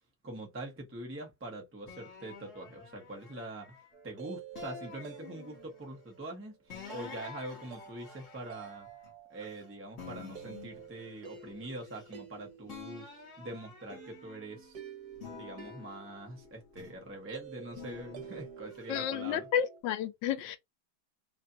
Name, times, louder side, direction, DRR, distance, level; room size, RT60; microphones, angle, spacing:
voice 1, 0.2-3.8 4.0-6.6 6.9-8.9 9.3-13.1 13.4-14.8 15.3-19.5, right 1 dB, 10° right, 0.6 m, -44 dB
sound 1, 1.9-4.0 4.6-5.9 6.7-9.6 10.0-12.3 12.7-14.7 15.2-17.1 17.7-18.9, left 6 dB, 45° left, 1.6 m, -50 dB
sound 2, 3.9-19.8, right 6 dB, 60° right, 1.4 m, -50 dB
voice 2, 18.9-20.6, left 9 dB, 85° left, 1.2 m, -31 dB
3.2 x 2.6 x 2.6 m
omnidirectional pair, 1.9 m